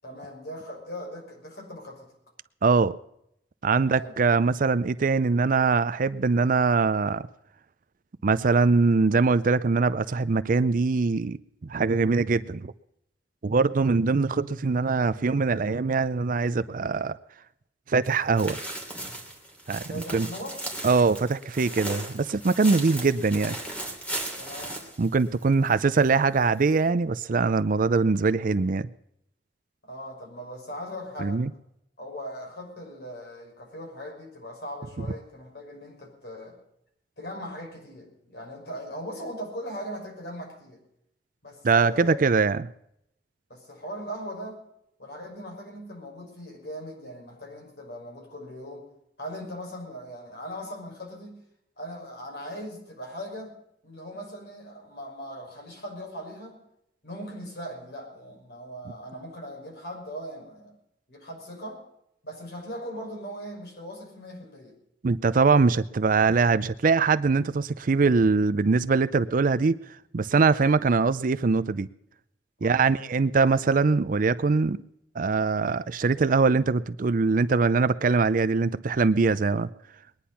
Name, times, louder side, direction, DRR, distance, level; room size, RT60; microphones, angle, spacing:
voice 1, 0.0-2.1 3.8-4.1 19.9-20.6 24.4-24.8 29.8-31.4 32.0-36.6 37.2-40.8 41.4-42.2 43.5-44.6 45.0-48.9 49.2-51.4 51.8-53.5 53.8-56.6 57.0-60.7 61.1-61.8 62.2-64.8 72.6-72.8, equal, 65° left, 6.1 m, -39 dB
voice 2, 2.6-2.9 3.6-7.2 8.2-11.4 11.7-12.7 13.4-17.2 17.9-18.6 19.7-20.3 20.8-23.5 25.0-28.9 31.2-31.5 41.6-42.7 65.0-69.7 70.1-71.9 72.6-74.8 75.2-79.7, right 4 dB, 50° right, 0.5 m, -22 dB
sound 1, 18.0-25.7 26.1-26.2 26.7-26.8, right 1 dB, 10° left, 3.0 m, -37 dB
21.0 x 10.0 x 5.7 m
head